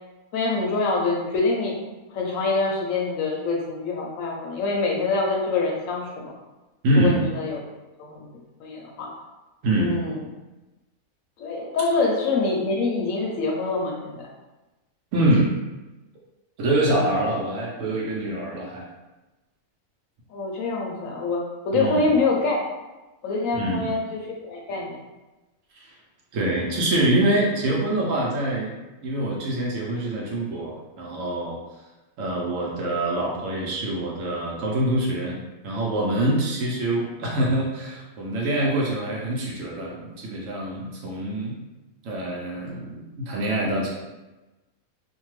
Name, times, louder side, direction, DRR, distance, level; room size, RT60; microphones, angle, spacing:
voice 1, 0.3-1.8 2.1-6.3 6.9-7.6 8.1-8.3 8.6-9.1 9.8-10.2 11.4-14.3 20.3-22.6 23.2-24.2 24.5-25.0, left 3 dB, 70° left, -1 dB, 0.9 m, -25 dB
voice 2, 6.8-7.2 9.6-9.9 15.1-15.5 16.6-18.8 21.7-22.1 23.5-23.9 25.7-25.9 26.3-28.7 29.0-31.6 32.2-35.4 35.6-41.6 42.0-43.9, right 1 dB, 65° right, -3 dB, 0.9 m, -25 dB
2.7 x 2.2 x 3.0 m, 1.1 s
omnidirectional pair, 1.6 m